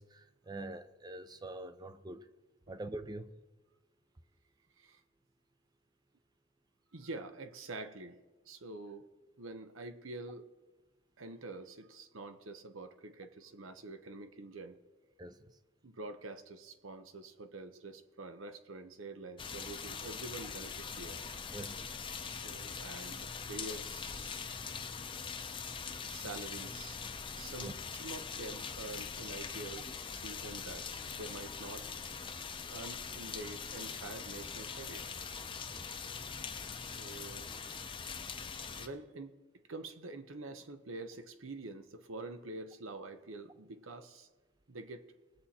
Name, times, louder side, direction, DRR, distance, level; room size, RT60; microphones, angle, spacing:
voice 1, 0.0-2.2 2.7-3.3 15.2-15.4 21.5-21.9 27.6-27.7 35.7-35.8, right 2 dB, 20° right, 0.6 m, -44 dB
voice 2, 6.9-9.1 9.4-10.5 11.2-14.8 15.8-21.2 22.2-24.4 26.0-27.0 27.3-31.9 32.7-35.1 36.8-44.3 44.7-45.0, right 2 dB, 85° right, 1.0 m, -47 dB
sound 1, 19.4-38.9, left 6 dB, 25° left, 0.7 m, -42 dB
20.5 x 7.6 x 4.3 m
head